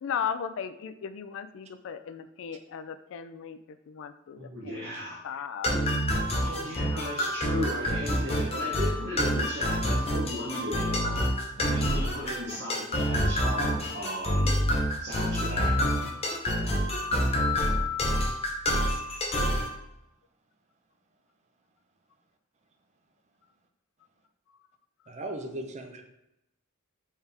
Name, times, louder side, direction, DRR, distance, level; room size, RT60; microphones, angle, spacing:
voice 1, 0.0-3.6 3.9-4.9 5.2-5.8, left 7 dB, 60° left, 11 dB, 0.3 m, -36 dB
voice 2, 4.4-5.2 6.4-11.2 11.6-14.6 15.0-15.7, left 1 dB, 55° right, -6 dB, 1.0 m, -36 dB
sound 1, 5.6-19.7, equal, 30° left, 0.7 m, -27 dB
voice 3, 25.1-26.0, right 1 dB, 30° right, 5 dB, 0.5 m, -38 dB
4.5 x 3.4 x 3.4 m, 0.86 s
head